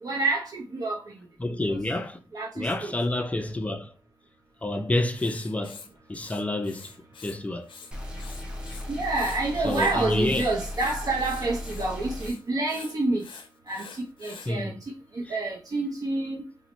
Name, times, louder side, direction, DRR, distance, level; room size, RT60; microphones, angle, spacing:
voice 1, 0.0-1.0 1.7-1.8 2.3-2.9 8.9-13.2 13.7-13.8 14.2-14.8 15.1-16.4, right 2 dB, 50° right, 0.6 m, -28 dB
voice 2, 1.4-2.2 2.5-3.9 4.6-5.8 6.1-6.9 7.2-7.7 9.6-10.5 14.5-14.8 15.2-15.4, left 1 dB, 15° left, 0.4 m, -28 dB
Writing, 5.1-7.4 7.6-8.8 9.1-14.5, left 5 dB, 85° left, 0.5 m, -46 dB
sound 1, 7.9-12.3, left 1 dB, 10° right, 0.7 m, -36 dB
3.8 x 2.1 x 2.9 m
wide cardioid pair, 125°, 8 cm